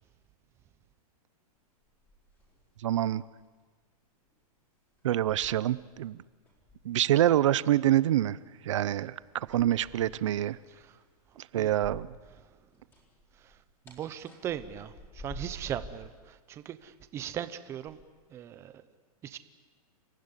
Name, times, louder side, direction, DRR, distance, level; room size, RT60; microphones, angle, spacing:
sound 1, 1.8-2.9 3.2-3.5 4.3-4.4 5.0-6.1 6.4-7.4 9.4-12.4 12.6-16.1 16.8-17.2 17.8-18.0, equal, 10° left, 4.3 m, -49 dB
voice 1, 2.8-3.2 5.0-6.2 6.8-8.4 8.6-10.6 11.4-12.1, right 12 dB, 50° right, 18 dB, 0.8 m, -26 dB
voice 2, 10.7-11.0 11.5-11.7 12.4-12.6 13.3-18.0 18.3-18.9 19.2-19.4, right 10 dB, 15° right, 12 dB, 0.8 m, -39 dB
29.5 x 15.5 x 9.9 m, 1.5 s
hypercardioid pair, 170°, 20 cm